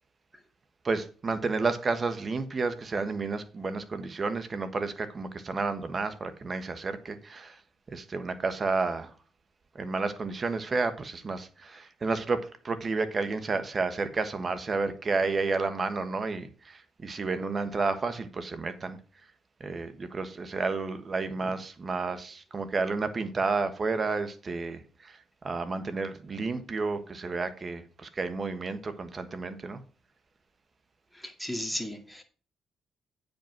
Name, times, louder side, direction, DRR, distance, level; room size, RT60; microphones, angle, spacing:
voice 1, 0.8-7.6 7.9-9.1 9.7-19.0 19.6-29.8, right 4 dB, 35° right, 1.3 m, -31 dB
voice 2, 31.1-32.2, left 1 dB, ahead, 2.1 m, -35 dB
8.9 x 5.4 x 5.9 m
cardioid pair, 90°, 0 cm